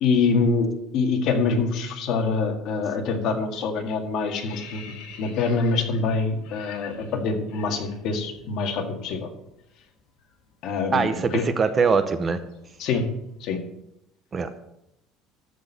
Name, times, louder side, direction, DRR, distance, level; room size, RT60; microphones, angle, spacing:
voice 1, 0.0-0.7 0.9-9.3 10.6-11.4 12.8-13.0 13.4-13.6, left 4 dB, 55° left, 4 dB, 1.8 m, -25 dB
sound 1, 2.9-3.2 3.5-8.5 8.8-9.0 9.3-13.3, left 6 dB, 70° left, 2.5 m, -47 dB
voice 2, 10.9-12.4 14.3-14.6, right 5 dB, 25° right, 10 dB, 0.7 m, -22 dB
13.5 x 4.5 x 8.1 m, 0.82 s
cardioid pair, 155°, 0 cm